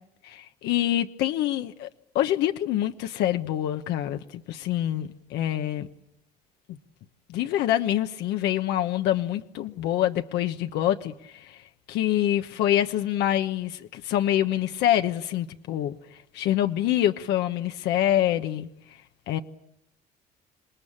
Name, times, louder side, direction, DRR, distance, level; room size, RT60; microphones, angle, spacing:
voice 1, 0.2-1.9 2.1-5.9 7.3-11.6 11.9-15.9 16.3-18.7 19.3-19.4, left 12 dB, 85° left, 1.1 m, -26 dB
27.0 x 20.0 x 8.8 m
cardioid pair, 110°, 17 cm